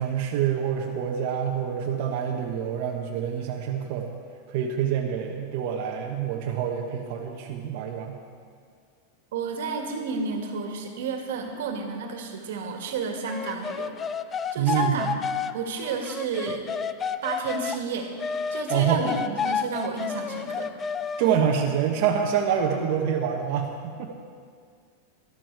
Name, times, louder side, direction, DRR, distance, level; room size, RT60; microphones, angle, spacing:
voice 1, 0.0-4.1 4.5-8.2 14.6-15.1 18.7-19.0 21.2-24.1, right 8 dB, 55° right, 0 dB, 1.1 m, -26 dB
voice 2, 9.3-13.9 14.5-15.1 15.5-16.6 17.2-18.1 18.5-20.7, right 5 dB, 80° right, 3 dB, 1.8 m, -31 dB
sound 1, 13.3-17.8 18.2-21.4, left 6 dB, 20° left, 0.4 m, -30 dB
13.0 x 12.5 x 4.7 m, 2.1 s
supercardioid pair, 145°, 0 cm